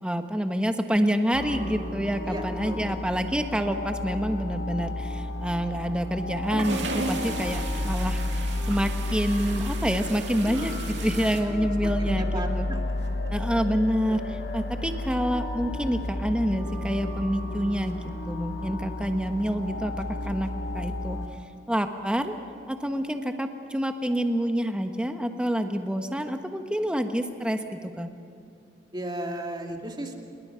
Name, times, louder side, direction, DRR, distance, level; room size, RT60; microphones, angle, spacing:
voice 1, 0.0-12.7 13.3-18.0 18.3-19.9 20.2-20.5 20.7-21.2 21.7-22.3 22.7-28.1, equal, 5° right, 6 dB, 1.2 m, -27 dB
sound 1, 1.3-21.3, left 1 dB, 80° left, 2.1 m, -32 dB
voice 2, 2.2-2.9 10.4-11.0 11.5-12.8 14.1-14.3 28.9-30.2, right 1 dB, 25° right, 2 dB, 2.3 m, -36 dB
sound 2, 6.4-11.4, right 3 dB, 85° right, 2.5 m, -35 dB
28.0 x 21.5 x 5.8 m, 2.4 s
head